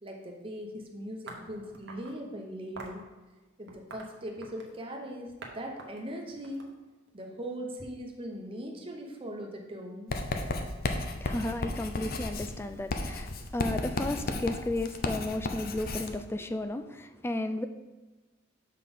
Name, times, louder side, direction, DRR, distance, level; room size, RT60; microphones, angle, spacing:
voice 1, 0.0-3.0 3.6-6.7 7.1-10.1, equal, 25° right, 1 dB, 1.0 m, -40 dB
sound 1, 1.3-2.2 2.8-3.0 3.7-4.8 5.4-5.5 5.8-7.2, right 3 dB, 60° right, 1.0 m, -46 dB
Writing, 10.1-16.2, left 2 dB, 50° left, 0.6 m, -34 dB
voice 2, 11.2-17.7, left 2 dB, 10° left, 8 dB, 0.3 m, -34 dB
6.5 x 4.0 x 5.4 m, 1.2 s
head